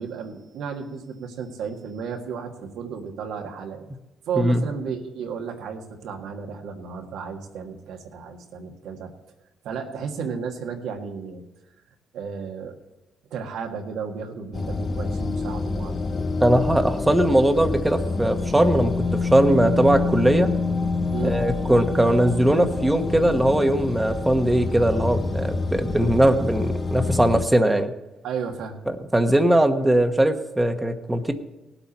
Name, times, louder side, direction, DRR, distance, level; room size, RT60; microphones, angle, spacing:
voice 1, 0.0-3.9 4.3-9.1 9.6-11.5 12.1-12.8 13.3-16.0 21.1-21.4 28.2-28.8, right 6 dB, 85° right, 3 dB, 1.8 m, -33 dB
sound 1, 14.5-27.5, left 3 dB, 35° left, 0.6 m, -27 dB
voice 2, 16.4-20.5 21.2-27.9 29.1-31.3, right 1 dB, 10° right, 6 dB, 1.3 m, -20 dB
18.5 x 8.0 x 4.3 m, 1.0 s
cardioid pair, 90°, 0 cm